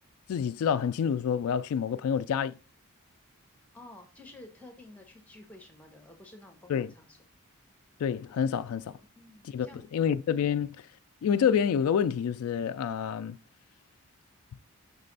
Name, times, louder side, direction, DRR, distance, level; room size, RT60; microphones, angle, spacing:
voice 1, 0.3-2.6 6.7-6.9 8.0-9.0 9.4-9.7 9.9-10.8 11.2-13.4, left 7 dB, 85° left, 0.3 m, -28 dB
voice 2, 3.7-7.2 9.2-9.9, left 2 dB, 5° left, 1.0 m, -51 dB
5.9 x 3.3 x 5.3 m
head